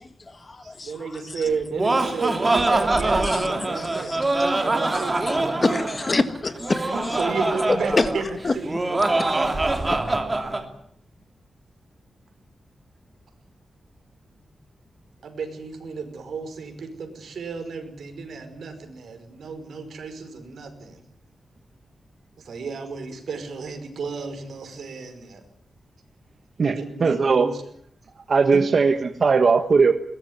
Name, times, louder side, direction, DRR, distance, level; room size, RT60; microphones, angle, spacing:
voice 1, 0.0-1.4 3.2-4.6 4.9-6.9 7.7-8.1 8.4-8.5 9.2-9.4 9.9-10.0, left 3 dB, 30° left, 11 dB, 1.7 m, -27 dB
voice 2, 0.6-4.1 4.6-5.9 6.9-8.8 15.2-21.0 22.4-25.4 26.7-27.6 28.5-28.6, right 5 dB, 90° right, 7 dB, 5.2 m, -33 dB
Laughter, 1.5-10.6, right 2 dB, 20° right, 2.7 m, -24 dB
voice 3, 26.6-27.5 28.3-29.9, right 4 dB, 45° right, 8 dB, 1.3 m, -19 dB
22.0 x 19.5 x 9.6 m, 0.67 s
wide cardioid pair, 170°, 0 cm